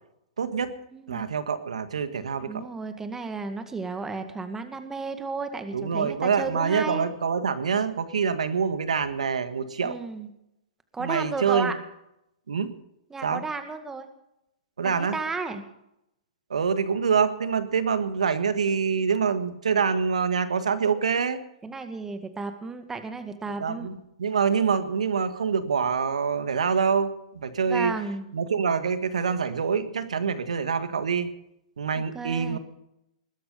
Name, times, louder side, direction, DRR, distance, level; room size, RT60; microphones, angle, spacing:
voice 1, 0.4-0.8 1.1-2.6 5.7-10.0 11.0-11.7 12.5-12.7 13.2-13.4 14.8-15.2 16.5-21.4 23.6-27.9 28.3-31.3 31.8-32.6, right 6 dB, 80° right, 12 dB, 1.6 m, -25 dB
voice 2, 0.9-1.3 2.4-7.1 9.8-10.3 10.9-11.8 13.1-14.1 14.8-15.6 21.6-23.9 27.7-28.3 32.0-32.6, right 4 dB, 10° right, 8 dB, 2.0 m, -33 dB
20.5 x 12.0 x 5.4 m, 0.81 s
hypercardioid pair, 120°, 4 cm